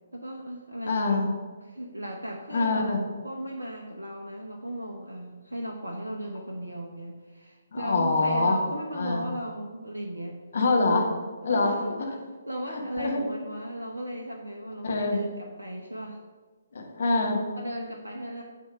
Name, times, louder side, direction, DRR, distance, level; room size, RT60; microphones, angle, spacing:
voice 1, 0.1-1.2 1.6-10.4 11.4-11.9 12.5-16.2 17.6-18.4, equal, 80° right, 1 dB, 0.8 m, -36 dB
voice 2, 0.8-1.3 2.5-3.0 7.7-8.6 8.9-9.2 10.5-11.1 11.4-11.7 12.7-13.2 14.8-15.2 16.7-17.4, left 3 dB, 55° left, 2 dB, 1.4 m, -25 dB
8.4 x 3.6 x 5.7 m, 1.4 s
figure-of-eight pair, 135°, 0 cm